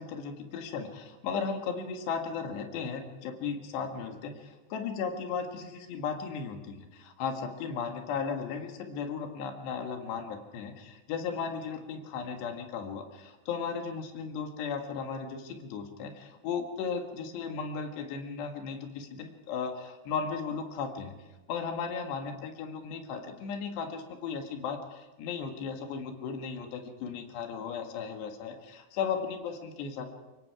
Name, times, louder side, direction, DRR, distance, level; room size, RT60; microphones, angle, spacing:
voice 1, 0.0-21.1 21.5-30.1, left 6 dB, 75° left, 4 dB, 3.9 m, -36 dB
25.0 x 22.0 x 4.8 m, 1.2 s
omnidirectional pair, 5.1 m